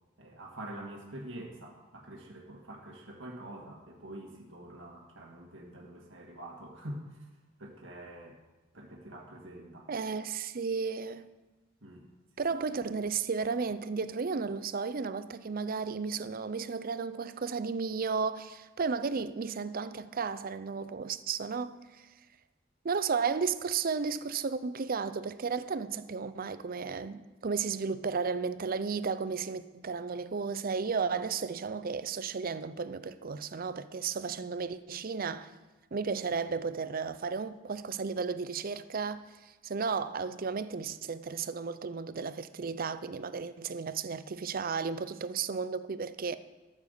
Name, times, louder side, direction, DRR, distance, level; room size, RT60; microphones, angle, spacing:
voice 1, 0.2-7.2 7.6-8.4 8.7-9.9 11.8-12.1 34.2-34.3, right 1 dB, 70° right, 1.8 m, -46 dB
voice 2, 9.9-11.3 12.4-22.1 22.8-35.5 35.9-39.2 39.6-46.4, right 5 dB, 45° right, 0.6 m, -33 dB
13.5 x 7.3 x 6.7 m
head